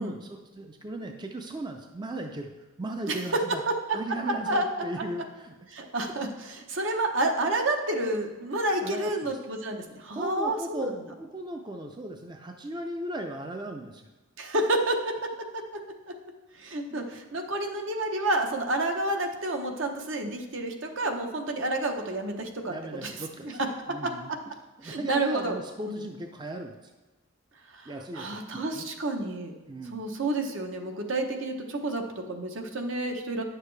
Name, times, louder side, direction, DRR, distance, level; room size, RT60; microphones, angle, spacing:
voice 1, 0.0-2.5 2.8-3.6 3.9-5.5 8.5-9.3 10.1-10.9 11.2-14.0 16.9-17.0 22.7-23.6 23.9-24.3 24.8-26.9 27.9-28.9 29.7-30.0, right 1 dB, 20° right, 4 dB, 0.4 m, -37 dB
voice 2, 5.7-10.9 14.4-15.2 15.5-15.8 16.6-22.7 23.0-23.1 24.0-24.1 24.8-25.6 25.9-26.0 28.1-29.5 29.9-33.4, right 2 dB, 70° right, 4 dB, 0.9 m, -29 dB
10.0 x 6.6 x 3.3 m, 1.1 s
head